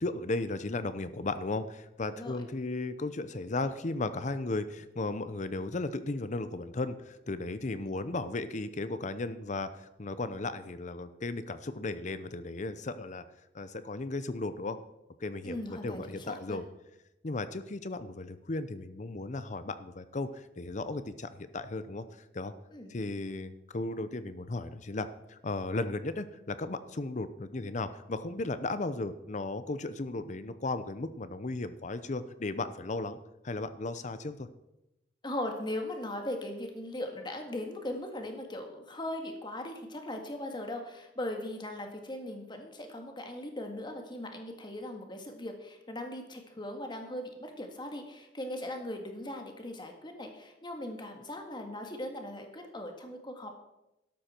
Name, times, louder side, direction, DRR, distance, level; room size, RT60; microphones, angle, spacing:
voice 1, 0.0-13.2 13.5-14.8 15.2-16.6 17.2-22.0 22.3-22.5 22.9-33.2 33.4-34.5, left 2 dB, 45° left, 13 dB, 0.7 m, -35 dB
voice 2, 15.4-16.6 22.7-22.9 35.2-53.5, left 1 dB, 25° left, 4 dB, 1.9 m, -39 dB
12.5 x 12.0 x 4.5 m, 0.93 s
head